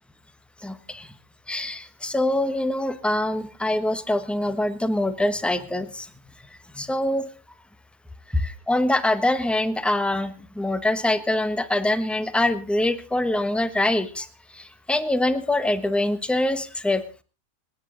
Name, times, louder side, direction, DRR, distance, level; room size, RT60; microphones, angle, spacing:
voice 1, 0.6-1.1 1.5-6.1 6.7-7.3 8.7-14.3 14.5-17.2, left 1 dB, ahead, 11 dB, 0.8 m, -24 dB
27.5 x 10.0 x 3.9 m, 0.34 s
omnidirectional pair, 1.8 m